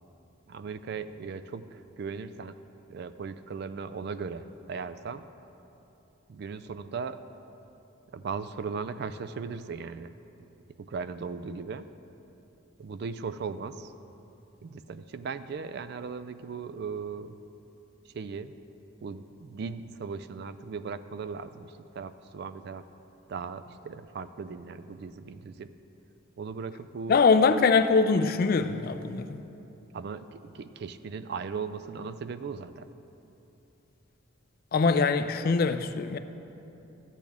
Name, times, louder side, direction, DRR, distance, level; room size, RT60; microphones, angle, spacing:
voice 1, 0.5-2.6 2.9-5.2 6.3-7.2 8.1-10.2 10.8-11.9 12.8-13.9 14.6-17.4 18.1-18.5 19.0-22.9 23.3-25.7 26.4-27.2 29.9-32.9, right 5 dB, 55° right, 12 dB, 0.3 m, -38 dB
voice 2, 27.1-29.4 34.7-36.2, left 4 dB, 45° left, 11 dB, 0.4 m, -23 dB
13.5 x 8.2 x 3.5 m, 3.0 s
head